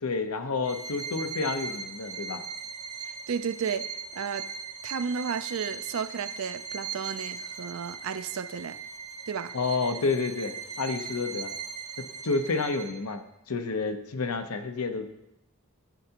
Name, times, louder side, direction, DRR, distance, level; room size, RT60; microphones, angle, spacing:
voice 1, 0.0-2.4 9.5-11.5 12.0-15.1, left 4 dB, 85° left, 0.9 m, -30 dB
Bowed string instrument, 0.6-13.1, right 5 dB, 85° right, 1.1 m, -39 dB
voice 2, 3.3-4.5 4.8-8.8 9.3-9.5, right 6 dB, 70° right, 0.4 m, -33 dB
13.0 x 7.9 x 2.9 m
head